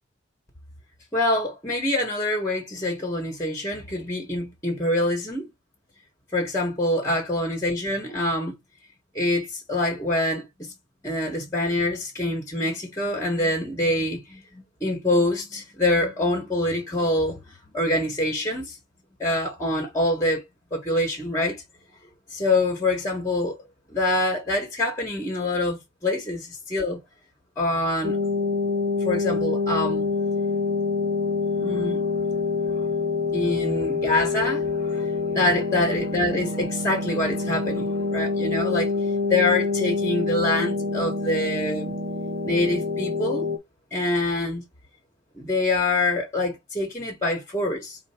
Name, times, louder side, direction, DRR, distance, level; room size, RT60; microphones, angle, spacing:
voice 1, 1.1-5.5 6.3-8.6 9.1-10.7 11.0-18.8 19.2-20.4 20.7-21.6 22.3-23.6 23.9-27.0 27.6-28.2 29.0-30.1 31.6-32.8 33.3-38.9 39.3-41.9 42.4-43.5 43.9-44.6 45.3-48.0, left 1 dB, 15° left, 1.2 m, -25 dB
sound 1, 28.0-43.6, left 4 dB, 55° right, 0.8 m, -26 dB
4.5 x 2.6 x 4.3 m
head